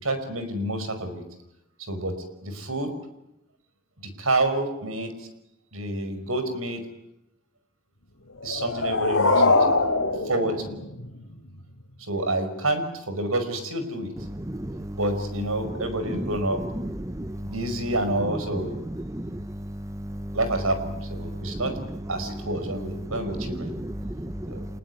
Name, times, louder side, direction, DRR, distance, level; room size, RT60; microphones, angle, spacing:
voice 1, 0.0-1.2 1.9-2.2 2.4-2.9 4.0-5.3 5.7-6.8 8.4-9.7 10.2-10.7 12.0-14.1 15.0-16.6 17.4-18.8 20.3-21.7 22.1-23.7 24.5-24.6, right 1 dB, 85° right, 9 dB, 5.5 m, -28 dB
sound 1, 8.4-11.4, left 3 dB, 75° left, 3.5 m, -23 dB
voice 2, 14.5-15.0 17.1-17.4 19.1-19.4 20.0-20.4 21.2-21.6 23.6-23.7 24.0-24.6, right 1 dB, 15° right, 11 dB, 0.9 m, -34 dB
27.5 x 20.0 x 9.6 m, 0.88 s
head